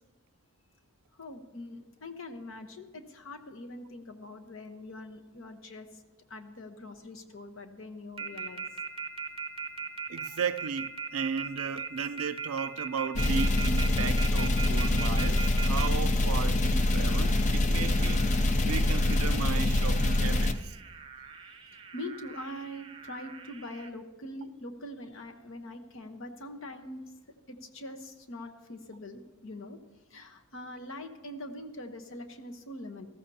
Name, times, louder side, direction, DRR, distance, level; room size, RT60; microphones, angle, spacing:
voice 1, 1.2-5.9 6.3-8.6 21.4-27.0 27.5-29.8 30.1-33.1, left 1 dB, 70° left, 1.0 m, -43 dB
sound 1, 8.2-15.9 16.5-23.9, right 6 dB, 25° right, 0.6 m, -40 dB
voice 2, 10.1-18.3 18.6-20.6, right 6 dB, 85° right, 0.4 m, -35 dB
sound 2, 13.2-20.5, left 1 dB, 35° left, 0.4 m, -25 dB
18.5 x 14.0 x 2.8 m
head